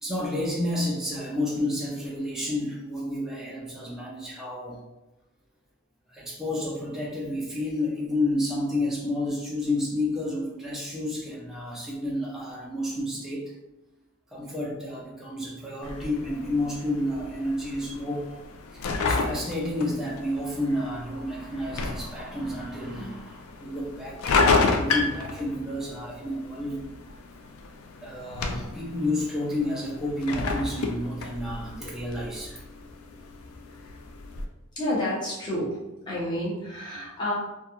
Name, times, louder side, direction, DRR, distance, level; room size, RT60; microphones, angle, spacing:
voice 1, 0.0-4.8 6.1-13.5 14.3-18.3 18.7-26.9 28.0-32.6, left 1 dB, ahead, -5 dB, 0.4 m, -30 dB
sound 1, 15.8-34.4, left 3 dB, 70° left, 0.3 m, -31 dB
voice 2, 34.8-35.8 36.1-37.3, left 1 dB, 20° left, -7 dB, 0.7 m, -29 dB
2.3 x 2.2 x 2.9 m, 0.98 s
head